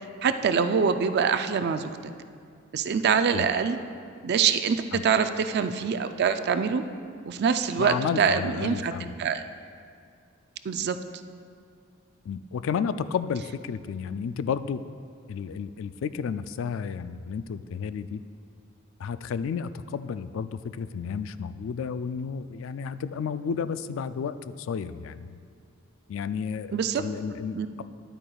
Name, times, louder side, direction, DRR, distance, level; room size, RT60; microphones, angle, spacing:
voice 1, 0.2-2.1 2.7-3.8 4.2-6.8 7.3-8.9 9.2-9.4 10.7-11.0 26.7-27.0 27.5-27.7, right 6 dB, 55° right, 10 dB, 0.4 m, -24 dB
voice 2, 7.8-9.1 12.3-14.8 15.3-18.2 19.0-25.4 26.1-27.8, left 6 dB, 70° left, 13 dB, 0.3 m, -32 dB
11.0 x 8.8 x 2.3 m, 2.2 s
head